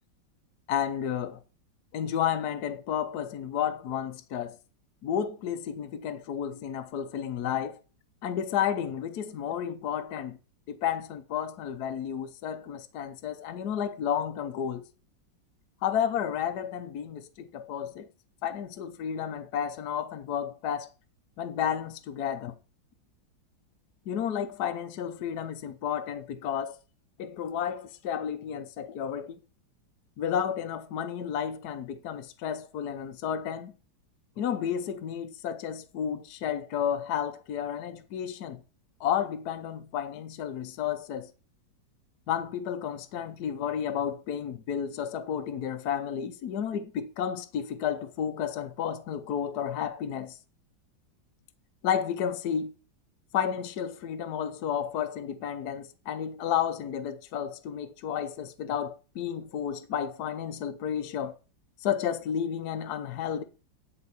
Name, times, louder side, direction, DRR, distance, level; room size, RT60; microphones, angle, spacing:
voice 1, 0.7-1.4 1.9-4.6 5.0-7.8 8.2-10.4 10.7-14.8 15.8-18.1 18.4-20.9 21.4-22.6 24.1-26.8 27.2-29.4 30.2-33.7 34.4-38.6 39.0-41.3 42.3-50.4 51.8-52.7 53.3-61.3 61.8-63.4, left 8 dB, 60° left, 1.2 m, -32 dB
9.9 x 4.6 x 6.8 m
omnidirectional pair, 2.1 m